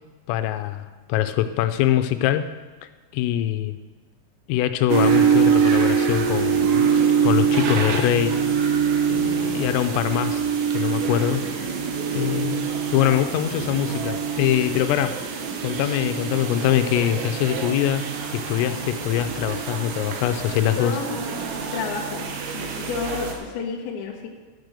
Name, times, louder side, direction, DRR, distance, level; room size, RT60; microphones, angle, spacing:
voice 1, 0.3-2.5 3.1-3.8 4.5-6.9 7.2-8.4 9.1-10.4 10.7-11.4 12.1-15.2 15.6-18.0 18.3-20.9, left 12 dB, 90° left, 10 dB, 3.3 m, -23 dB
sound 1, 4.9-23.4, right 7 dB, 90° right, 3.8 m, -24 dB
voice 2, 20.8-21.3 21.7-22.3 22.5-24.3, left 5 dB, 65° left, -2 dB, 2.0 m, -30 dB
12.5 x 6.2 x 6.6 m, 1.3 s
omnidirectional pair, 5.8 m